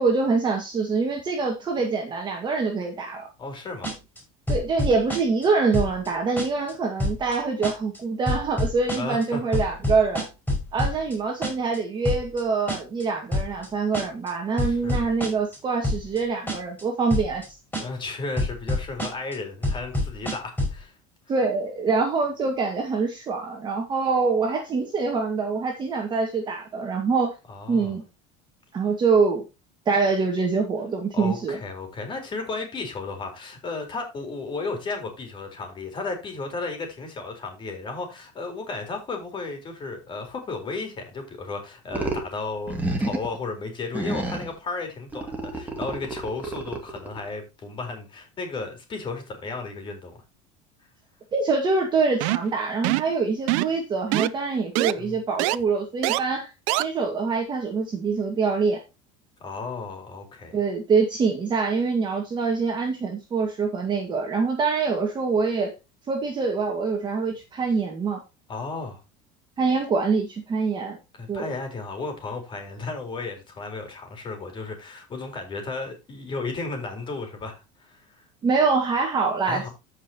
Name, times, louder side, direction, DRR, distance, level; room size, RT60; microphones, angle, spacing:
voice 1, 0.0-3.3 4.5-10.3 10.7-17.6 21.3-27.3 27.7-28.0 28.7-29.4 29.9-31.6 51.3-56.5 56.7-58.8 60.5-65.7 66.1-68.2 69.6-71.0 71.3-71.5 78.4-79.7, right 4 dB, 25° right, 1.8 m, -25 dB
voice 2, 3.4-3.9 9.0-9.4 14.6-15.0 17.8-20.9 27.5-27.9 31.1-50.2 55.0-55.2 59.4-60.6 68.5-69.0 71.1-78.2 79.4-79.7, left 3 dB, 30° left, 4.1 m, -34 dB
sound 1, 3.8-4.2 4.5-5.5 5.7-6.1 6.4-6.7 7.0-7.3 7.6-8.0 8.3-9.2 9.5-11.1 11.4-11.8 12.0-12.4 12.7-13.0 13.3-13.7 13.9-14.3 14.6-15.6 15.8-16.2 16.5-16.8 17.1-17.5 17.7-18.1 18.4-19.3 19.6-20.8, left 1 dB, 10° left, 6.0 m, -26 dB
sound 2, 41.9-42.3 42.7-43.4 43.9-44.6 45.1-47.2, right 2 dB, 10° right, 2.4 m, -30 dB
sound 3, 52.2-52.5 52.8-53.1 53.5-53.8 54.1-54.3 54.8-54.9 55.4-55.6 56.0-56.2 56.7-56.8, right 19 dB, 75° right, 0.6 m, -23 dB
14.5 x 5.6 x 2.9 m
supercardioid pair, 130°, 17 cm